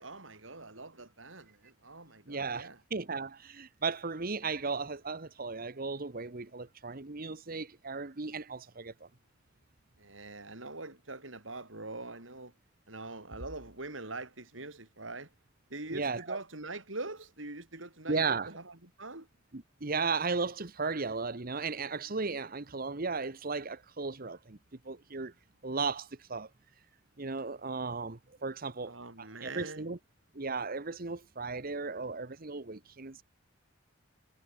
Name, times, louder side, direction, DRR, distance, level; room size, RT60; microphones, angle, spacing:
voice 1, 0.0-2.8 10.0-12.5 12.9-15.3 15.7-19.3 28.8-29.8, right 2 dB, 90° right, 7.2 m, -43 dB
voice 2, 2.3-9.1 15.9-16.4 18.1-18.5 19.5-24.6 24.8-25.3 25.6-26.5 27.2-30.0 30.3-33.2, right 4 dB, 50° right, 1.2 m, -35 dB
head